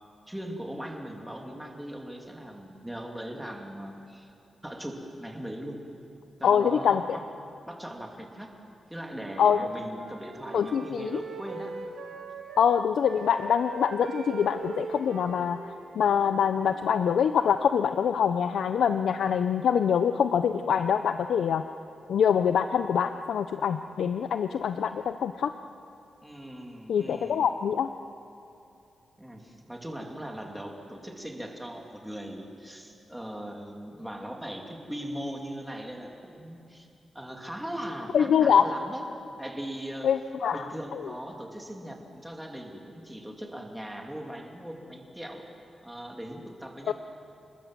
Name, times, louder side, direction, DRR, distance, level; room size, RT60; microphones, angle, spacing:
voice 1, 0.3-4.3 4.6-5.8 6.4-7.2 7.7-8.5 8.9-11.8 26.2-27.5 29.2-36.9 37.1-39.1 39.4-40.1 40.5-45.4 45.8-46.9, equal, 5° right, 1 dB, 2.5 m, -39 dB
voice 2, 6.4-7.2 9.4-9.7 10.5-11.2 12.6-15.6 16.0-21.6 22.1-25.5 26.9-27.9 38.1-38.6 40.0-41.1 46.9-47.0, left 7 dB, 85° left, 9 dB, 0.7 m, -24 dB
Wind instrument woodwind instrument, 9.0-12.7 13.0-17.1, right 4 dB, 85° right, 2.7 m, -42 dB
27.5 x 21.0 x 7.6 m, 2.7 s
wide cardioid pair, 170°, 0 cm